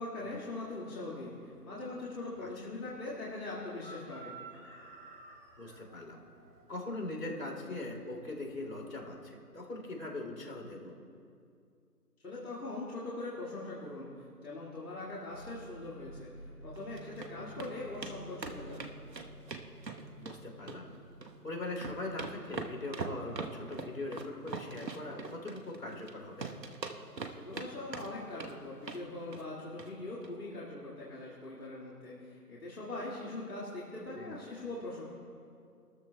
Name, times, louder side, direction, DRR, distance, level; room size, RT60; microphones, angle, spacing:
voice 1, 0.0-4.3 12.2-16.3 16.6-18.9 27.3-35.0, left 2 dB, 60° left, -6 dB, 2.2 m, -42 dB
Chicken rooster, 1.0-9.3, right 3 dB, 50° right, 2.7 m, -56 dB
voice 2, 5.6-6.2 6.7-10.9 17.4-17.6 20.2-20.9 21.4-26.5 34.2-34.4, left 2 dB, 80° left, 1 dB, 3.3 m, -41 dB
sound 1, 15.3-26.7, right 1 dB, 65° right, 3.3 m, -54 dB
sound 2, 16.8-17.3 17.6-17.7 18.0-18.1 18.4-20.4 20.7-21.4 21.6-26.1 26.4-27.7 27.9-28.5 28.8-29.0 29.3-29.5 29.8-29.9 30.2-30.3, right 4 dB, 90° right, 1.3 m, -41 dB
21.0 x 13.5 x 2.3 m, 2.4 s
figure-of-eight pair, 165°, 48 cm